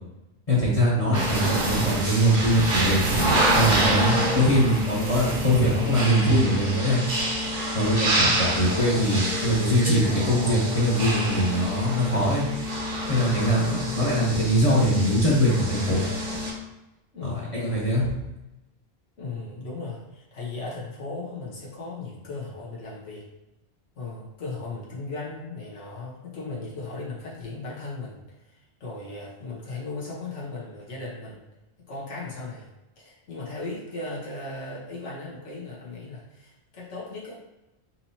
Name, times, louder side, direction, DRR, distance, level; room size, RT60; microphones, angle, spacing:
voice 1, 0.5-3.2 3.5-7.0 7.7-12.4 13.1-16.0 17.2-18.1, equal, 35° left, -6 dB, 1.1 m, -22 dB
sound 1, 1.1-16.5, right 1 dB, 55° right, 1.2 m, -27 dB
voice 2, 4.3-4.8 8.1-8.4 13.6-14.0 17.1-17.6 19.2-23.2 24.0-31.4 31.9-32.7 33.0-37.5, left 3 dB, 90° left, -6 dB, 1.5 m, -37 dB
5.8 x 2.9 x 2.7 m, 0.99 s
omnidirectional pair, 1.2 m